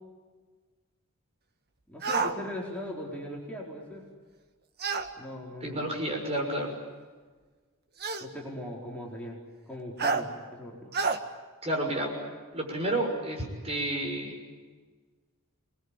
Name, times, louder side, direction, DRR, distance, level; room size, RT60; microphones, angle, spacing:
voice 1, 1.9-4.1 5.2-5.9 8.2-9.4 9.7-10.9, left 1 dB, 5° left, -3 dB, 4.4 m, -39 dB
sound 1, 2.0-2.4 4.8-5.1 6.3-6.4 8.0-8.3 10.0-10.2 10.9-11.2, right 4 dB, 50° right, 1.7 m, -28 dB
voice 2, 5.6-6.7 11.6-12.1 12.5-14.4, right 1 dB, 30° right, 1 dB, 6.3 m, -30 dB
27.5 x 21.0 x 9.9 m, 1.4 s
head